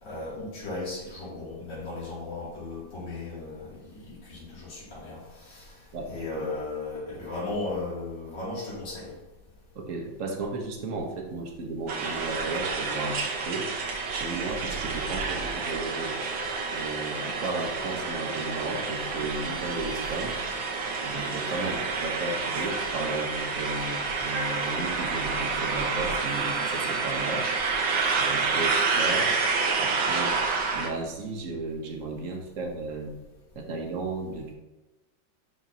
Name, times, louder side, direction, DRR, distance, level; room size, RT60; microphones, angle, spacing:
voice 1, 0.0-5.8 6.1-9.1 21.6-21.8, left 2 dB, 70° left, -8 dB, 3.4 m, -36 dB
voice 2, 5.9-6.6 9.7-13.7 14.2-16.1 16.7-20.4 21.0-27.5 28.2-29.3 29.8-30.4 30.7-33.1 33.5-34.5, right 3 dB, 50° right, 2 dB, 1.3 m, -34 dB
sound 1, 11.9-30.9, right 4 dB, 75° right, 1.7 m, -29 dB
11.0 x 4.4 x 2.8 m, 1.1 s
omnidirectional pair, 2.1 m